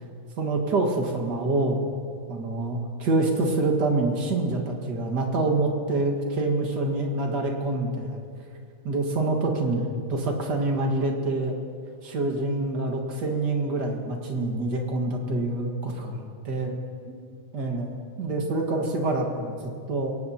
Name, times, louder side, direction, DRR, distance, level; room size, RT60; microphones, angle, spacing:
voice 1, 0.4-1.9 2.3-8.2 8.8-11.6 12.0-15.9 16.5-16.7 17.1-17.2 17.5-20.1, right 2 dB, 50° right, 2 dB, 2.1 m, -26 dB
22.0 x 18.5 x 2.8 m, 2.4 s
omnidirectional pair, 2.3 m